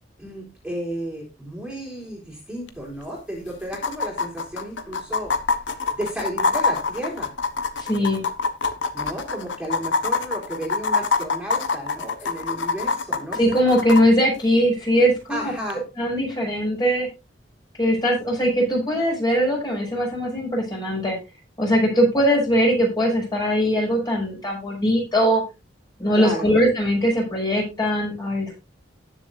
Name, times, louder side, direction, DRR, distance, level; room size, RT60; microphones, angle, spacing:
voice 1, 0.2-5.4 5.9-7.3 8.9-13.7 15.3-15.8 26.1-26.5, right 1 dB, 5° right, -2 dB, 3.7 m, -33 dB
sound 1, 2.7-2.8 3.0-3.1 3.7-14.0 15.7-15.8, left 4 dB, 80° left, 1.2 m, -25 dB
voice 2, 7.8-8.2 13.4-15.5 16.0-17.1 17.8-21.2 21.6-25.4 26.0-28.6, equal, 25° left, -1 dB, 5.9 m, -21 dB
19.5 x 7.1 x 2.5 m, 0.26 s
head